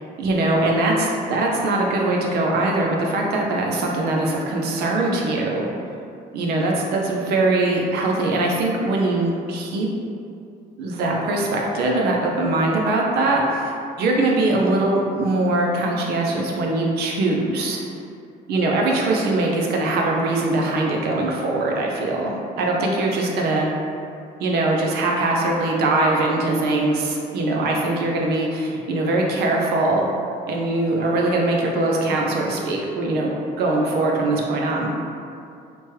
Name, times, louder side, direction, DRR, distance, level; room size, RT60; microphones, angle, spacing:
voice 1, 0.2-5.7 6.3-9.9 10.8-17.8 18.5-23.7 24.4-30.1 30.5-33.3 33.6-34.9, right 2 dB, 70° right, -1 dB, 0.5 m, -22 dB
3.0 x 2.2 x 3.1 m, 2.5 s
cardioid pair, 110°, 17 cm